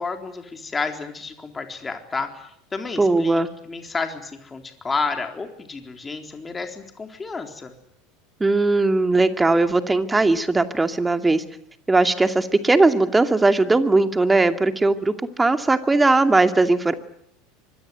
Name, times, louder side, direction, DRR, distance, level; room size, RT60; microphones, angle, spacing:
voice 1, 0.0-2.4 2.7-3.4 3.7-7.7, left 4 dB, 20° left, 5 dB, 4.0 m, -30 dB
voice 2, 3.0-3.5 8.4-11.4 11.9-16.9, right 2 dB, 15° right, 8 dB, 2.5 m, -19 dB
25.0 x 22.0 x 9.5 m, 0.72 s
hypercardioid pair, 80°, 0 cm